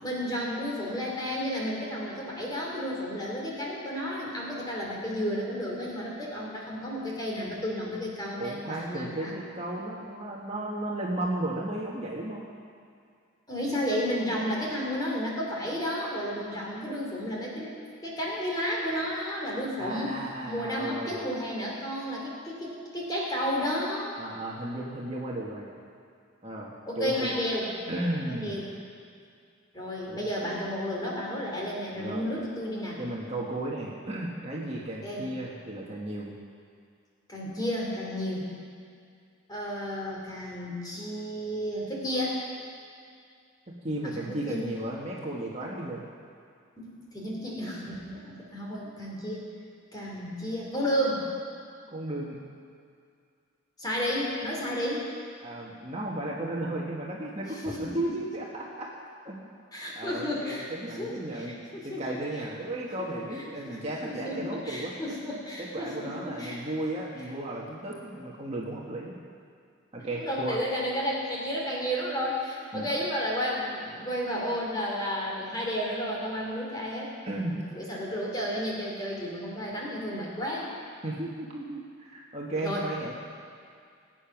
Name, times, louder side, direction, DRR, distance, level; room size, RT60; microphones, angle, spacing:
voice 1, 0.0-9.3 13.5-20.2 20.4-24.1 26.9-27.7 28.2-28.7 29.7-33.0 35.0-35.3 37.3-38.5 39.5-42.4 44.0-44.7 46.8-49.5 49.9-51.2 53.8-55.1 57.6-58.1 59.7-60.6 60.9-62.1 62.4-62.6 63.0-63.1 63.4-66.6 70.0-77.1 77.5-80.7 82.5-82.9, equal, 20° left, -3 dB, 3.0 m, -32 dB
voice 2, 8.4-12.4 19.8-21.2 24.2-25.7 26.4-27.3 27.9-28.6 30.1-30.2 31.9-32.3 33.0-36.3 43.7-46.0 51.9-52.4 55.4-58.9 59.2-59.5 59.9-64.9 65.6-69.1 69.9-70.6 72.7-72.9 77.2-77.6 81.0-83.1, right 1 dB, 30° right, -3 dB, 1.5 m, -34 dB
20.5 x 9.0 x 6.0 m, 2.3 s
head